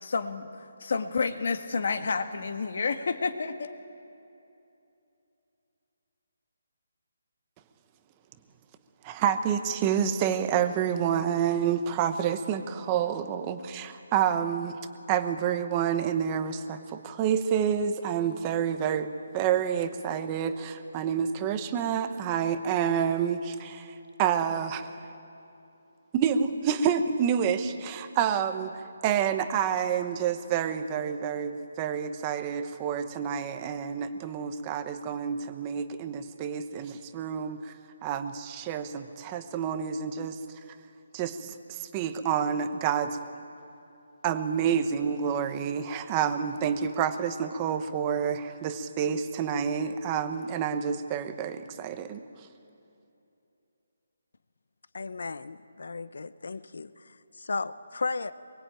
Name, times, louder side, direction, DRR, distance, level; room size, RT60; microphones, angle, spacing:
voice 1, 0.0-3.7, left 4 dB, 50° left, 8 dB, 1.7 m, -30 dB
voice 2, 9.0-14.8 15.1-24.9 26.1-37.7 38.0-40.4 41.1-43.2 44.2-52.2, right 8 dB, 15° right, 9 dB, 0.9 m, -28 dB
voice 3, 54.9-56.9 57.4-58.3, left 3 dB, 70° left, 14 dB, 1.0 m, -34 dB
24.5 x 22.5 x 9.0 m, 2.8 s
hypercardioid pair, 175°, 0 cm